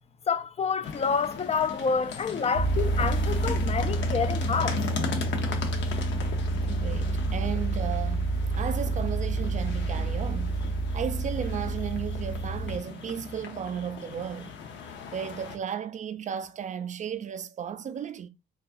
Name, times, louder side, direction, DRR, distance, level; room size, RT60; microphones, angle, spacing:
voice 1, 0.3-4.8, left 5 dB, 30° left, 0.4 m, -28 dB
sound 1, 0.8-15.5, left 5 dB, 65° left, 0.7 m, -38 dB
sound 2, 2.5-12.8, right 2 dB, 75° right, 1.0 m, -29 dB
voice 2, 6.5-10.6 10.9-14.5 15.1-18.3, right 8 dB, 40° right, 0.4 m, -34 dB
4.0 x 2.3 x 2.5 m
cardioid pair, 90°, 20 cm